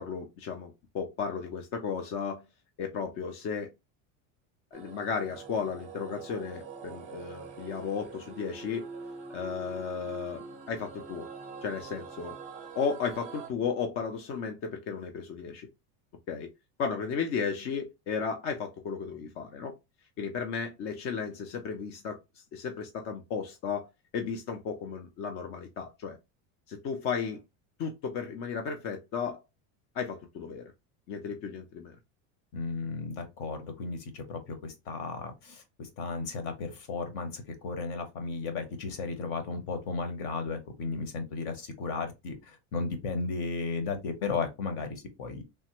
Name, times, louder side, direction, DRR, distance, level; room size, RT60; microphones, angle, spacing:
voice 1, 0.0-2.4 2.8-3.7 4.7-8.9 9.3-11.3 11.6-12.4 12.8-15.7 16.3-16.5 16.8-19.7 20.2-22.2 22.5-23.9 24.1-26.2 26.7-27.4 27.8-29.4 29.9-30.7 31.1-32.0, left 6 dB, 35° left, 0.4 m, -34 dB
sound 1, 4.7-13.5, right 4 dB, 20° right, 0.5 m, -44 dB
voice 2, 32.5-45.4, left 4 dB, 55° left, 1.0 m, -35 dB
3.2 x 2.1 x 2.9 m
cardioid pair, 155°, 41 cm